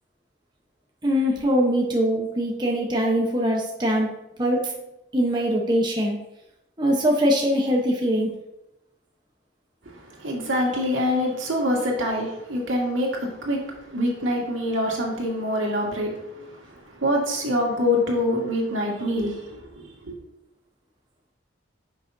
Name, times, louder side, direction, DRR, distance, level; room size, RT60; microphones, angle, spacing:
voice 1, 1.0-4.1 4.4-4.7 5.1-6.2 6.8-8.3, equal, 20° right, -2 dB, 0.9 m, -22 dB
voice 2, 9.9-13.6 13.9-19.5 19.7-20.1, left 1 dB, 80° right, -2 dB, 2.1 m, -25 dB
9.7 x 6.2 x 2.7 m, 0.92 s
head